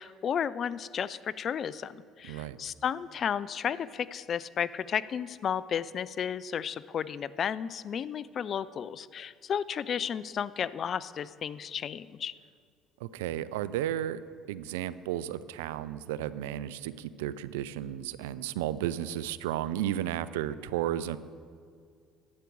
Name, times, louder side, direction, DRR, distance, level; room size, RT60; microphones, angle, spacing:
voice 1, 0.0-12.3, left 8 dB, 50° left, 18 dB, 0.3 m, -33 dB
voice 2, 2.2-2.6 13.0-14.2 14.5-21.2, right 12 dB, 85° right, 16 dB, 0.3 m, -33 dB
11.5 x 8.2 x 4.7 m, 2.2 s
hypercardioid pair, 65°, 0 cm